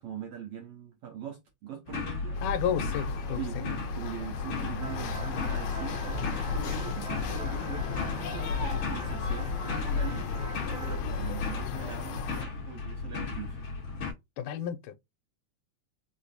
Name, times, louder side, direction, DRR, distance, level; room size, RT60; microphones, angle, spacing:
voice 1, 0.0-2.4 3.4-13.6, right 8 dB, 70° right, 1.5 m, -42 dB
sound 1, 1.9-14.1, left 3 dB, 50° left, 1.6 m, -36 dB
sound 2, 2.3-12.4, left 6 dB, 75° left, 1.8 m, -35 dB
voice 2, 2.4-3.6 10.1-10.4 14.4-15.0, left 9 dB, 90° left, 2.0 m, -32 dB
sound 3, 4.8-11.1, right 5 dB, 90° right, 2.4 m, -45 dB
5.1 x 2.1 x 2.7 m
omnidirectional pair, 3.4 m